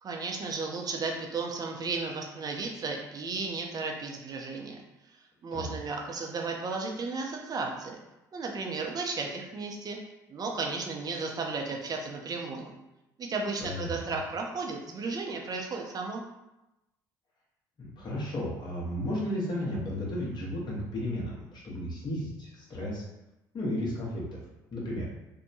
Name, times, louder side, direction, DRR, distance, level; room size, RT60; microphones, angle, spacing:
voice 1, 0.0-4.8 5.4-8.0 8.3-10.0 10.3-12.7 13.2-16.2, right 4 dB, 40° right, 1 dB, 0.6 m, -34 dB
voice 2, 13.6-14.1 17.8-23.0 23.5-24.4 24.7-25.1, left 1 dB, 45° left, -4 dB, 1.1 m, -34 dB
2.7 x 2.1 x 2.7 m, 0.94 s
hypercardioid pair, 60°, 10 cm